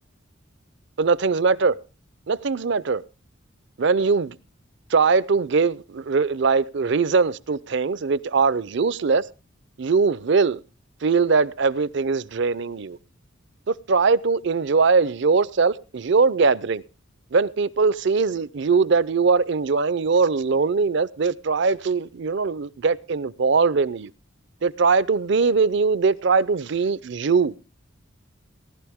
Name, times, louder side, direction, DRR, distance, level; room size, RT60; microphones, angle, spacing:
voice 1, 1.0-1.7 2.3-3.0 3.8-4.4 4.9-9.2 9.8-10.6 11.0-13.0 13.7-16.8 17.3-24.1 24.6-27.5, right 4 dB, 60° right, 0.6 m, -21 dB
18.5 x 12.0 x 3.6 m
head